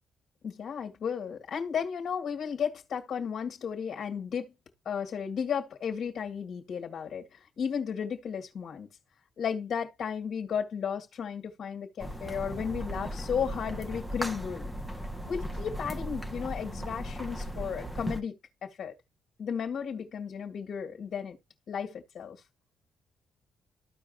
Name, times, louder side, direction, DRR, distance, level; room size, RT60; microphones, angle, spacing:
voice 1, 0.4-4.5 4.9-7.3 7.6-8.9 9.4-14.7 15.3-18.3 18.6-18.9 19.4-21.4 21.7-22.4, left 7 dB, 55° left, 2.0 m, -34 dB
sound 1, 12.0-18.2, equal, 5° right, 1.3 m, -37 dB
14.0 x 4.9 x 2.5 m
cardioid pair, 90°, 0 cm